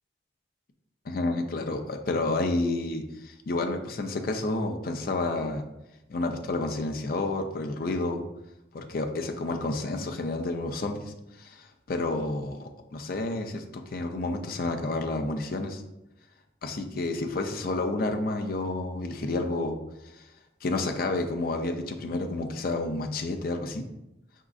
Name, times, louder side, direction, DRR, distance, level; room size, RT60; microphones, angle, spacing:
voice 1, 1.1-5.6 6.1-8.2 8.7-15.8 16.6-19.8 20.1-20.2 20.6-23.8, left 2 dB, 55° left, 4 dB, 0.5 m, -30 dB
4.9 x 3.7 x 2.4 m, 0.91 s
head